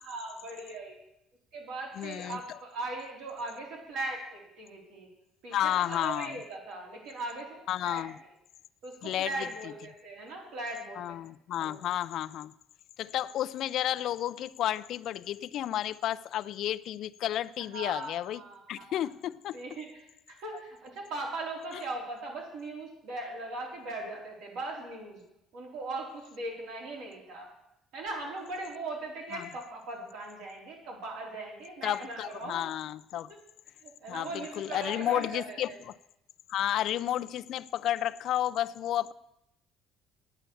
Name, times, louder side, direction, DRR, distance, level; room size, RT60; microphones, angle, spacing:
voice 1, 0.0-1.0 1.5-5.1 5.4-8.0 8.8-11.2 11.6-11.8 17.7-19.1 19.5-25.2 25.5-27.5 27.9-32.7 33.8-35.8, right 2 dB, 70° right, 3.9 m, -39 dB
voice 2, 2.0-2.4 5.5-6.4 7.7-8.1 9.0-9.3 9.6-9.7 11.0-12.5 13.0-18.4 18.7-19.6 29.3-29.5 31.8-33.3 34.1-35.7 36.5-39.1, left 12 dB, 50° left, 0.3 m, -32 dB
10.0 x 9.0 x 7.0 m
cardioid pair, 175°, 0 cm